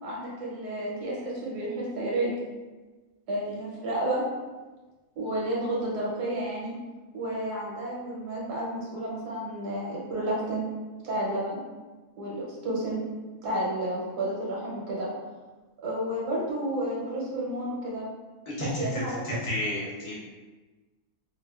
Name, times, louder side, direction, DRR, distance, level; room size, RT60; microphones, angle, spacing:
voice 1, 0.0-2.4 3.3-4.2 5.1-6.7 7.1-10.7 11.0-11.6 12.2-13.0 13.4-15.1 15.8-18.1 18.5-19.4, right 1 dB, 90° right, -5 dB, 1.3 m, -31 dB
voice 2, 18.5-20.2, left 1 dB, 75° left, -8 dB, 1.5 m, -32 dB
4.3 x 2.1 x 2.2 m, 1.2 s
omnidirectional pair, 1.6 m